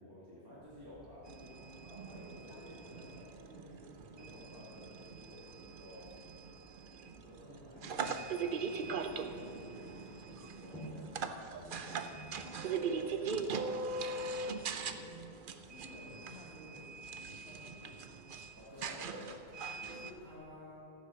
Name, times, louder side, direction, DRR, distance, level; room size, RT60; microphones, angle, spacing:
voice 1, 0.0-3.1 4.2-6.1 7.0-7.8 8.5-12.5 13.4-14.9 18.6-19.4 19.8-20.8, left 1 dB, 20° right, -7 dB, 2.3 m, -54 dB
Light Footsteps, 0.6-20.3, right 1 dB, 5° left, 3.0 m, -59 dB
sound 1, 1.3-20.1, right 4 dB, 55° right, 0.8 m, -41 dB
voice 2, 1.9-4.4 7.4-8.9 12.9-14.6 14.9-15.1 15.7-16.9 17.2-18.2, equal, 70° left, -4 dB, 3.3 m, -55 dB
14.5 x 8.3 x 6.4 m, 2.7 s
omnidirectional pair, 1.2 m